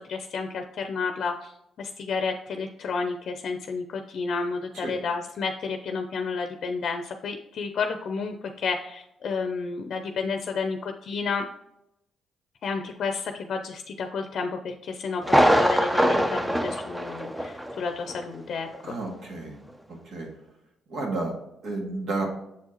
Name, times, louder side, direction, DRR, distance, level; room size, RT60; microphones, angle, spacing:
voice 1, 0.1-1.5 1.8-11.4 12.6-19.0, left 4 dB, 60° left, 6 dB, 0.6 m, -31 dB
Thunder, 15.2-17.8 18.1-18.2 18.7-18.8, equal, 10° right, 0.6 m, -22 dB
voice 2, 18.8-19.6 19.9-20.3 20.9-21.4 21.6-22.3, right 3 dB, 70° right, 0 dB, 2.0 m, -31 dB
7.1 x 4.6 x 3.0 m, 0.81 s
cardioid pair, 90°, 0 cm